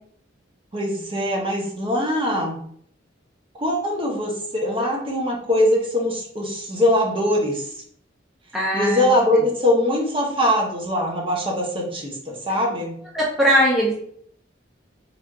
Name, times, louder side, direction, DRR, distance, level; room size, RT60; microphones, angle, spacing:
voice 1, 0.7-2.6 3.5-7.7 8.7-12.9, left 1 dB, 30° right, -1 dB, 0.8 m, -22 dB
voice 2, 8.5-9.1 13.1-13.9, equal, 5° right, -5 dB, 0.6 m, -19 dB
3.4 x 2.5 x 3.7 m, 0.64 s
head